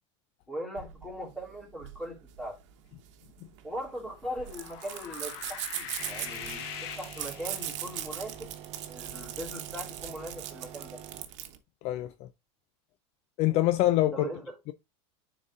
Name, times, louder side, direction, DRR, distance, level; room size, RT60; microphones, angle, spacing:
voice 1, 0.5-2.6 3.6-8.5 8.9-11.0 14.1-14.6, equal, 5° left, 3.0 m, -40 dB
sound 1, 0.8-11.6, right 11 dB, 75° right, 1.0 m, -40 dB
sound 2, 4.3-8.0, left 10 dB, 70° left, 1.1 m, -42 dB
sound 3, 6.0-11.3, right 10 dB, 45° right, 0.8 m, -47 dB
voice 2, 13.4-14.2, left 15 dB, 45° left, 0.4 m, -24 dB
9.7 x 4.0 x 2.5 m
supercardioid pair, 130°, 15 cm